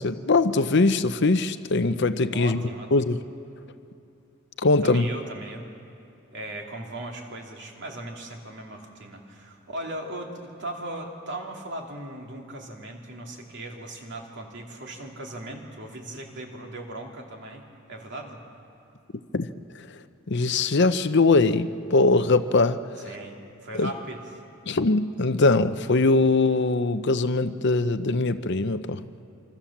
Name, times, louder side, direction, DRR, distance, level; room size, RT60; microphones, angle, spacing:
voice 1, 0.0-2.6 2.9-3.2 4.6-5.1 19.3-19.5 19.9-20.0 20.3-22.8 23.7-23.9 24.7-29.0, left 3 dB, 50° left, 11 dB, 0.7 m, -21 dB
voice 2, 2.3-2.9 4.8-5.6 6.3-17.6 17.9-18.4 23.0-24.2, right 1 dB, 55° right, 1 dB, 2.8 m, -38 dB
26.5 x 25.5 x 7.3 m, 2.7 s
head